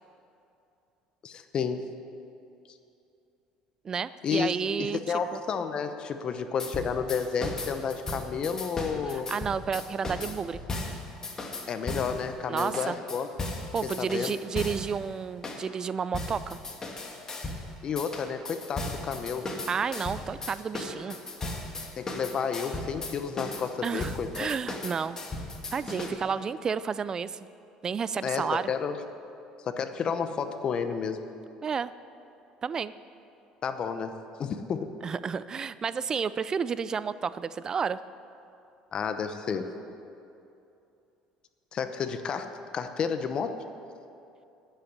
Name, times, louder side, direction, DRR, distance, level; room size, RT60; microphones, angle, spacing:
voice 1, 1.2-1.8 4.2-9.3 11.7-13.3 13.8-14.3 17.8-19.5 22.0-24.5 28.2-29.0 29.7-31.2 33.6-34.1 34.4-34.9 38.9-39.7 41.7-42.5 42.7-43.5, left 6 dB, 45° left, 9 dB, 0.8 m, -31 dB
voice 2, 3.8-5.0 5.3-5.4 9.1-10.6 12.5-13.0 13.7-16.6 19.7-21.2 23.8-25.2 25.7-27.4 27.8-28.7 31.6-31.9 32.6-32.9 35.0-38.0, right 6 dB, 30° right, 16 dB, 0.4 m, -31 dB
sound 1, 6.6-12.2 12.6-14.9 15.4-15.6 16.1-17.6 18.0-26.1, left 2 dB, 25° left, 1.8 m, -36 dB
10.0 x 8.0 x 9.5 m, 2.7 s
supercardioid pair, 105°, 2 cm